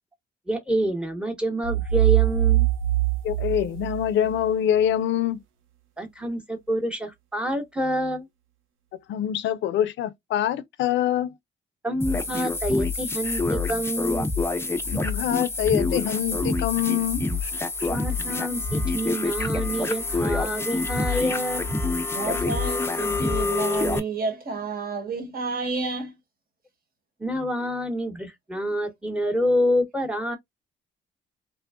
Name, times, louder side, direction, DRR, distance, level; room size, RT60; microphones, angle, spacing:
voice 1, 0.5-2.7 6.0-8.3 11.8-14.3 17.9-21.6 27.2-30.4, equal, 5° right, 0.9 m, -27 dB
sound 1, 1.6-4.5, right 14 dB, 80° right, 0.7 m, -22 dB
voice 2, 3.2-5.4 9.1-11.3 14.9-17.5 17.8-17.9, left 10 dB, 70° left, 0.5 m, -25 dB
sound 2, 12.0-24.0, left 3 dB, 10° left, 0.5 m, -27 dB
voice 3, 22.1-26.2 28.7-28.8, right 4 dB, 50° right, 1.3 m, -30 dB
3.3 x 2.2 x 2.3 m
cardioid pair, 90°, 20 cm